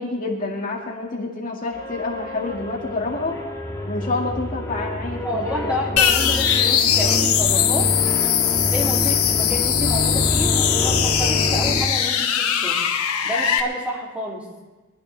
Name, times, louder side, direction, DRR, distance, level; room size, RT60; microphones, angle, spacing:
voice 1, 0.0-3.4 3.9-6.0, left 3 dB, 40° left, -1 dB, 2.0 m, -28 dB
sound 1, 1.7-11.9, left 1 dB, 15° left, 1.6 m, -27 dB
voice 2, 5.2-7.9 8.2-8.3 8.6-12.8 13.2-14.4, left 1 dB, 5° right, -3 dB, 2.7 m, -29 dB
sound 2, 6.0-13.6, left 9 dB, 85° left, 1.1 m, -20 dB
23.5 x 12.0 x 3.4 m, 1.2 s
head